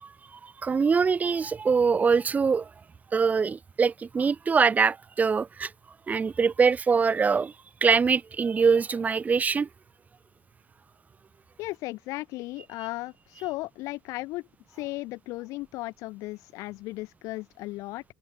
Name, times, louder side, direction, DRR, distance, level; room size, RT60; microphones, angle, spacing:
voice 1, 0.0-2.7 3.1-5.7 6.1-7.5 7.8-9.7, right 5 dB, 25° right, 0.9 m, -23 dB
voice 2, 11.6-14.4 14.7-18.0, left 20 dB, 55° left, 1.3 m, -36 dB
figure-of-eight pair, 60°, 6 cm